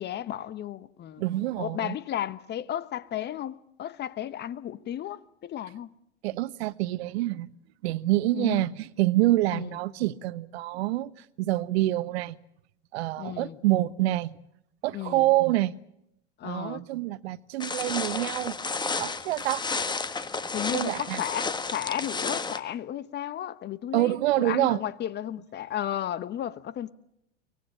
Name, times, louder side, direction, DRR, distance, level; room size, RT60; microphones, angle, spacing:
voice 1, 0.0-1.3 1.6-5.9 8.3-8.6 9.5-9.7 13.2-13.6 14.9-15.3 16.4-16.9 20.5-26.9, left 11 dB, 30° left, 1.0 m, -34 dB
voice 2, 1.2-1.9 6.2-7.5 7.8-11.1 11.4-12.4 12.9-14.3 14.8-15.7 16.4-18.6 19.0-19.7 20.7-21.2 23.9-24.8, right 16 dB, 65° right, 1.1 m, -26 dB
sound 1, 17.6-22.6, left 4 dB, 10° left, 1.4 m, -32 dB
24.0 x 19.0 x 8.6 m
hypercardioid pair, 100°, 35 cm